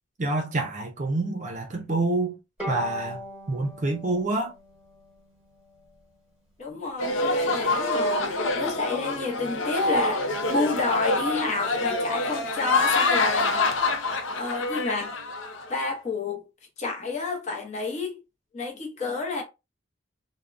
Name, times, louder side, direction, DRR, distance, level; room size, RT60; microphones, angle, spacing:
voice 1, 0.2-2.4 2.7-4.5, right 2 dB, 40° right, 0.5 m, -27 dB
Bowed string instrument, 2.6-5.9, equal, 5° right, 1.1 m, -39 dB
voice 2, 6.6-13.8 14.3-15.1 15.7-16.4 16.8-18.2 18.5-19.4, left 3 dB, 35° left, 0.7 m, -30 dB
sound 1, 7.0-15.7, left 2 dB, 85° left, 0.6 m, -26 dB
3.5 x 2.1 x 2.4 m
head